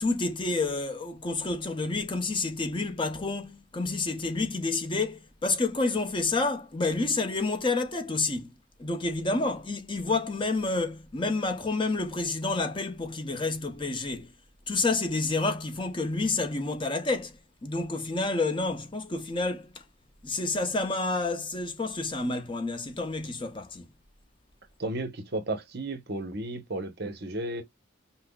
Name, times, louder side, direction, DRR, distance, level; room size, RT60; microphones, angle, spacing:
voice 1, 0.0-8.5 8.8-14.3 14.7-19.8 20.2-23.8, left 3 dB, 25° left, 0.6 m, -29 dB
voice 2, 24.8-27.6, right 2 dB, 50° right, 0.9 m, -33 dB
5.7 x 2.1 x 2.3 m
head